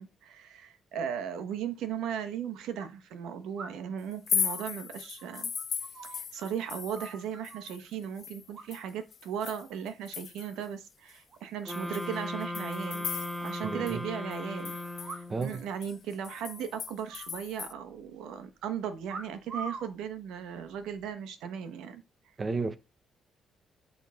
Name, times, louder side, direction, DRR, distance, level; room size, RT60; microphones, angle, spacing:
voice 1, 0.0-5.5 6.1-13.1 13.4-14.8 15.0-22.0, right 8 dB, 90° right, 1.1 m, -37 dB
sound 1, 1.8-1.9 3.6-4.0 4.4-6.5 6.7-7.8 8.5-9.1 9.4-9.7 10.1-10.7 11.0-11.1 11.3-11.4 11.7-11.8 12.1-12.2 12.9-13.9 15.0-15.6 15.8-15.9 16.3-16.6 17.1-18.0 19.1-19.9 20.7-21.0, right 4 dB, 55° right, 1.7 m, -45 dB
sound 2, 4.1-7.2 7.4-10.6 11.1-11.2 11.7-13.6 13.9-14.0 14.3-17.7, left 7 dB, 55° left, 0.4 m, -37 dB
sound 3, 11.6-15.5, left 1 dB, 15° right, 3.0 m, -37 dB
voice 2, 13.6-14.0 15.3-15.6 22.4-22.8, right 4 dB, 35° right, 0.8 m, -32 dB
8.5 x 3.6 x 3.7 m
cardioid pair, 90°, 0 cm